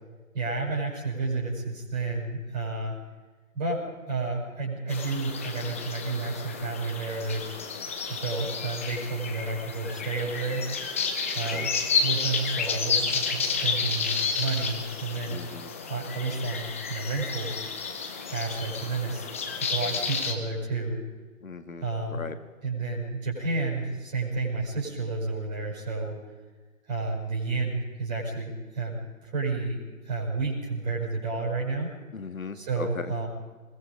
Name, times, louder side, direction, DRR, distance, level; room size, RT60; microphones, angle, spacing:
voice 1, 0.3-3.0 3.5-7.6 8.1-10.7 11.3-11.7 12.0-15.4 15.9-17.5 18.3-19.3 19.6-21.0 21.8-22.2 22.6-26.2 26.9-29.0 29.2-31.9 32.5-33.3, right 3 dB, 30° right, -3 dB, 7.1 m, -31 dB
sound 1, 4.9-20.3, left 5 dB, 10° left, 0.7 m, -31 dB
voice 2, 15.3-15.7 21.4-21.9 22.1-22.4 32.1-33.1, left 5 dB, 70° left, 9 dB, 2.2 m, -38 dB
22.5 x 22.5 x 5.2 m, 1.3 s
figure-of-eight pair, 145°, 42 cm